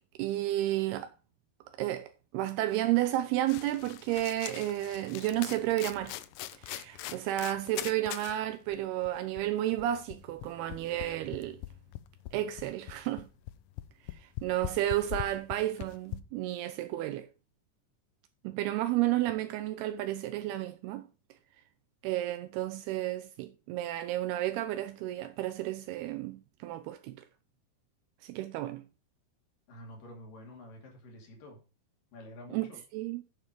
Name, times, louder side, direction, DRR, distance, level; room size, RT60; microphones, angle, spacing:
voice 1, 0.2-1.1 1.8-6.2 6.5-11.6 12.3-13.3 14.1-17.3 18.4-21.0 22.0-27.2 28.2-28.8 32.5-32.7 32.9-33.2, right 14 dB, 80° right, 2.6 m, -32 dB
sound 1, 3.5-8.4 8.7-8.8 9.0-16.2, left 15 dB, 90° left, 1.8 m, -42 dB
voice 2, 29.7-31.6 32.1-32.8, left 1 dB, 60° left, 3.9 m, -49 dB
9.5 x 7.0 x 4.6 m
omnidirectional pair, 4.6 m